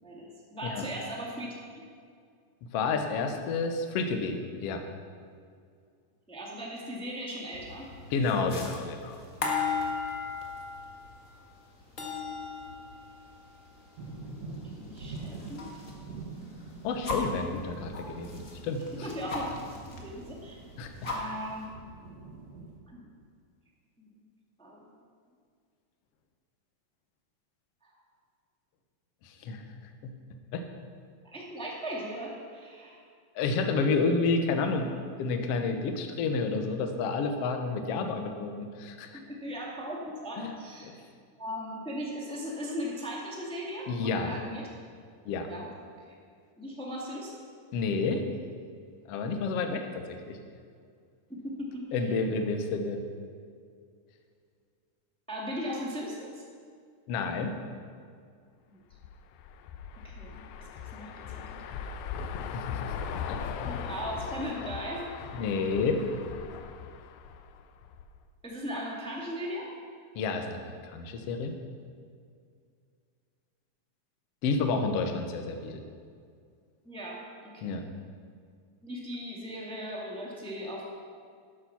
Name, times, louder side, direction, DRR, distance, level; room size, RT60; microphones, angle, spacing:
voice 1, 0.0-1.5 6.3-7.9 14.6-15.7 18.9-19.6 20.0-20.6 21.0-21.8 22.9-23.1 24.0-24.1 24.6-24.9 27.8-27.9 31.2-33.0 39.1-40.9 41.4-44.6 45.4-45.7 46.6-47.4 51.3-52.2 55.3-56.4 58.7-58.8 60.0-61.6 63.6-65.0 68.4-69.7 76.8-77.7 78.8-80.9, equal, 5° left, -3 dB, 0.6 m, -38 dB
voice 2, 2.7-4.8 8.1-9.2 16.8-19.1 20.8-20.9 29.2-29.6 30.0-30.1 30.5-30.6 33.3-34.9 35.2-39.2 40.4-40.5 40.8-40.9 43.9-44.3 45.2-45.5 47.7-48.2 49.1-49.8 50.1-50.4 51.9-53.0 57.1-57.5 62.5-62.9 63.3-63.4 65.4-66.0 70.1-71.5 74.4-75.8 77.6-77.8, left 4 dB, 70° left, 5 dB, 1.5 m, -30 dB
sound 1, 7.5-16.0 16.3-17.4 17.9-20.0 20.3-20.4 20.7-21.6, left 4 dB, 45° left, 1.0 m, -37 dB
sound 2, 14.0-22.8, right 3 dB, 60° right, 2.1 m, -45 dB
sound 3, 58.9-68.2, left 7 dB, 90° left, 2.4 m, -39 dB
12.5 x 8.9 x 5.8 m, 2.2 s
omnidirectional pair, 4.0 m